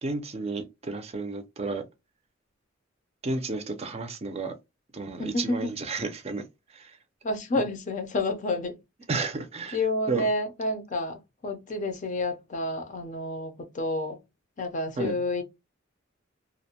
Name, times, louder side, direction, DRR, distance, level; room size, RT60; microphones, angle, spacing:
voice 1, 0.0-1.8 3.2-4.6 4.9-6.4 6.7-7.0 9.1-9.8 10.1-10.3 15.0-15.2, right 3 dB, 30° right, 0.5 m, -32 dB
voice 2, 5.2-5.7 7.2-8.8 9.7-14.2 14.6-15.4, left 2 dB, 40° left, 0.5 m, -29 dB
2.5 x 2.1 x 2.7 m
head